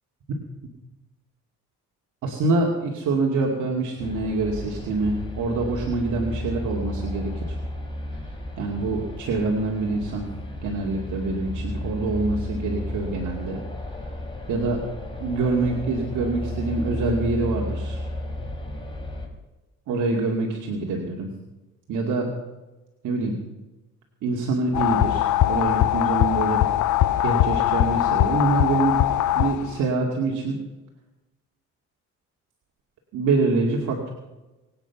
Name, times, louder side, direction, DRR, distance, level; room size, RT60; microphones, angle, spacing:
voice 1, 2.2-7.6 8.6-10.3 10.6-13.6 14.0-14.1 14.5-14.8 15.2-18.1 19.9-21.3 21.9-22.3 23.0-23.4 24.2-26.6 27.2-29.0 29.3-30.6 33.1-34.1, right 3 dB, 80° right, -1 dB, 2.5 m, -25 dB
sound 1, 4.0-19.3, left 1 dB, 15° left, 4.0 m, -33 dB
sound 2, 24.7-29.8, left 13 dB, 75° left, 0.7 m, -21 dB
24.0 x 9.2 x 5.9 m, 1.1 s
cardioid pair, 90°, 30 cm